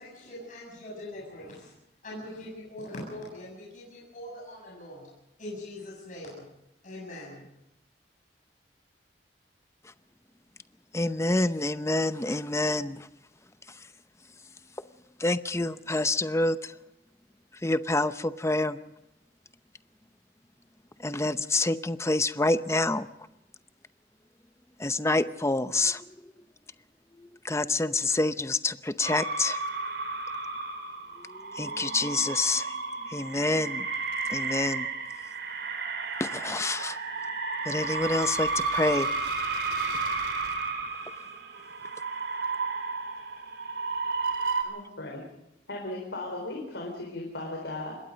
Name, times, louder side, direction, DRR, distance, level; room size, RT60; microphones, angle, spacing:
voice 1, 0.0-1.7 2.0-5.1 5.4-6.5 6.8-7.5, left 1 dB, 50° left, -4 dB, 7.5 m, -42 dB
voice 2, 10.9-13.1 15.2-16.7 17.6-18.8 21.0-23.1 24.8-26.3 27.2-29.6 31.2-32.8 33.0-33.9 34.3-34.9 36.2-37.0 37.7-39.1 39.9-40.0, left 2 dB, 15° left, 12 dB, 0.7 m, -27 dB
sound 1, 29.0-44.6, right 4 dB, 75° right, 4.3 m, -32 dB
voice 3, 44.6-45.2 45.7-48.0, left 2 dB, 80° left, 0 dB, 4.2 m, -37 dB
26.0 x 21.0 x 5.2 m, 0.89 s
head